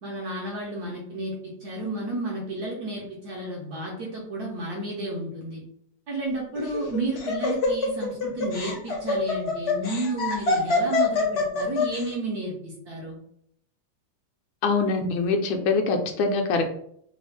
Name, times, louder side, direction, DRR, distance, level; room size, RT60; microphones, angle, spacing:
voice 1, 0.0-5.6 6.1-13.2, right 2 dB, 65° right, -2 dB, 1.0 m, -32 dB
Laughter, 6.6-12.0, left 3 dB, 55° left, 0.7 m, -25 dB
voice 2, 14.6-16.8, left 4 dB, 80° left, 3 dB, 1.3 m, -24 dB
3.4 x 2.3 x 3.1 m, 0.69 s
omnidirectional pair, 2.2 m